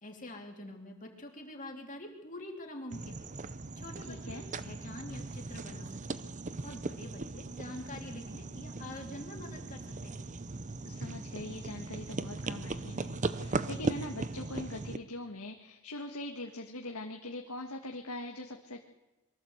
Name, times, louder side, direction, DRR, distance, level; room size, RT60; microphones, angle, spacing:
voice 1, 0.0-3.3 3.7-6.3 6.6-10.2, left 1 dB, 35° left, 2 dB, 3.0 m, -46 dB
sound 1, 2.9-15.0, right 3 dB, 35° right, 0.8 m, -38 dB
voice 2, 4.1-4.4 10.9-18.8, left 2 dB, 85° left, 2 dB, 1.8 m, -42 dB
23.0 x 15.0 x 8.0 m, 1.1 s
head